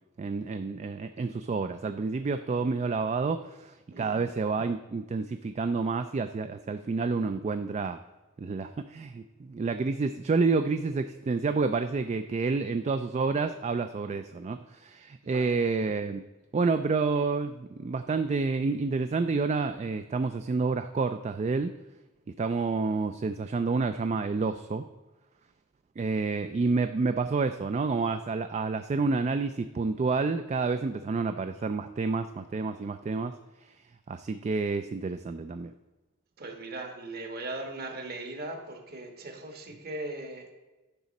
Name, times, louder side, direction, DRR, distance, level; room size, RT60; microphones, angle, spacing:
voice 1, 0.2-8.0 8.4-16.2 16.5-21.7 22.4-24.8 26.0-33.3 34.1-35.7, right 4 dB, 35° right, 9 dB, 0.3 m, -29 dB
voice 2, 3.9-4.3 15.2-15.6 36.4-40.5, right 2 dB, 50° right, 4 dB, 1.4 m, -39 dB
10.5 x 6.0 x 4.1 m, 1.2 s
head